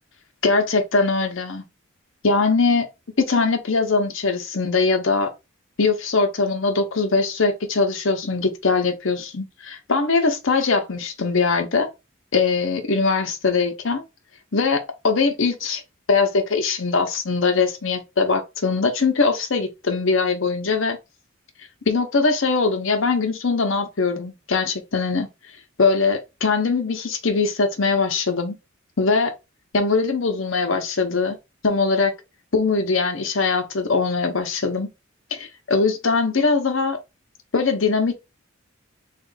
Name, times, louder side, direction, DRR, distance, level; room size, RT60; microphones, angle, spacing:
voice 1, 0.4-1.6 2.2-2.9 3.2-5.3 5.8-11.9 12.3-14.0 14.5-15.8 16.1-21.0 21.9-25.3 25.8-28.6 29.0-29.3 29.7-31.4 31.6-32.1 32.5-34.9 35.3-37.0 37.5-38.1, left 4 dB, 65° left, 0.8 m, -21 dB
3.6 x 2.5 x 3.8 m
head